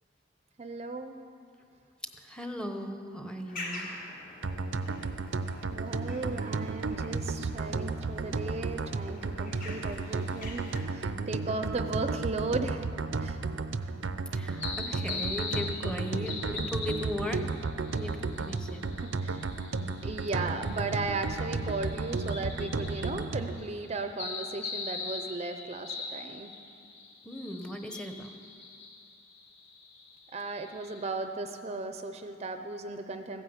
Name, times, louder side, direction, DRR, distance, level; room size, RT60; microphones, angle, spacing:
voice 1, 0.6-1.2 5.7-12.9 13.2-13.4 13.8-13.9 19.0-19.5 20.0-26.5 30.3-33.4, right 3 dB, 35° right, 7 dB, 0.6 m, -36 dB
voice 2, 2.2-3.9 14.3-17.5 17.9-18.8 27.2-28.3, left 1 dB, 5° left, 5 dB, 0.9 m, -37 dB
sound 1, 3.5-10.8, left 2 dB, 50° left, 2.5 m, -46 dB
sound 2, 4.4-23.6, right 3 dB, 90° right, 0.6 m, -33 dB
sound 3, 14.5-31.1, left 4 dB, 65° left, 3.5 m, -42 dB
15.5 x 10.0 x 8.0 m, 2.5 s
head